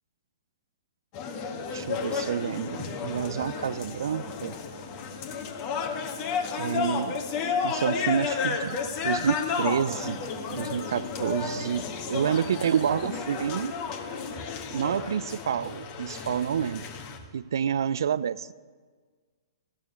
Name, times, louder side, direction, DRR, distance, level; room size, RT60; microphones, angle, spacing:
sound 1, 1.1-17.2, left 5 dB, 40° left, 1.8 m, -32 dB
voice 1, 1.7-4.6 6.6-7.2 7.6-8.8 9.0-10.2 10.5-13.8 14.7-16.9 17.3-18.5, right 8 dB, 65° right, 19 dB, 0.5 m, -28 dB
15.0 x 7.4 x 9.5 m, 1.5 s
hypercardioid pair, 120°, 2 cm